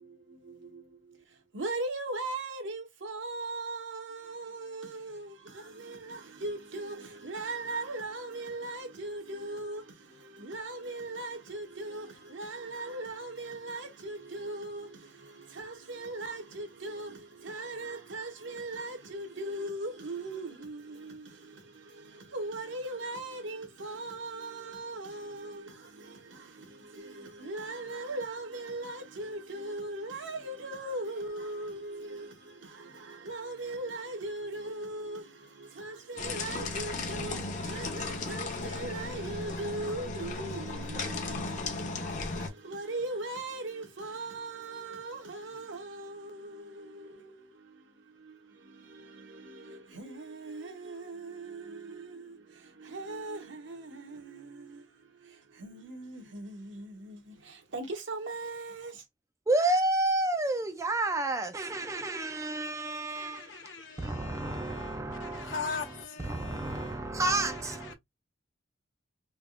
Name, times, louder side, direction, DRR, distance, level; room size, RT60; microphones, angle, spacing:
voice 1, 0.0-59.0, right 2 dB, 65° right, 0.9 m, -39 dB
sound 1, 36.2-42.5, left 3 dB, 40° left, 0.7 m, -36 dB
voice 2, 59.5-65.7 66.2-67.9, right 2 dB, 15° right, 0.3 m, -30 dB
voice 3, 63.1-67.0 67.5-67.9, left 4 dB, 70° left, 0.7 m, -41 dB
3.3 x 2.3 x 2.4 m
head